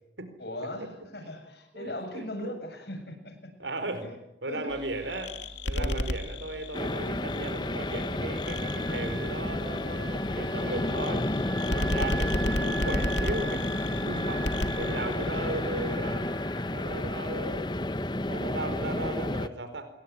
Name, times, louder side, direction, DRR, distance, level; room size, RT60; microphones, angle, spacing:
voice 1, 0.4-3.5 4.0-4.1 4.5-4.8 5.7-6.0 11.7-12.0, left 1 dB, 65° left, 6 dB, 7.9 m, -38 dB
voice 2, 1.7-2.5 3.6-4.1 4.4-5.4 5.6-11.3 11.7-16.3 16.7-17.7 18.2-19.9, right 2 dB, 85° right, 9 dB, 4.5 m, -36 dB
sound 1, 4.7-16.0, left 1 dB, 80° left, 2.7 m, -35 dB
sound 2, 6.7-19.5, left 1 dB, 25° left, 1.0 m, -31 dB
Wind instrument woodwind instrument, 8.4-16.7, right 4 dB, 60° right, 6.5 m, -42 dB
27.5 x 22.0 x 9.9 m, 0.85 s
head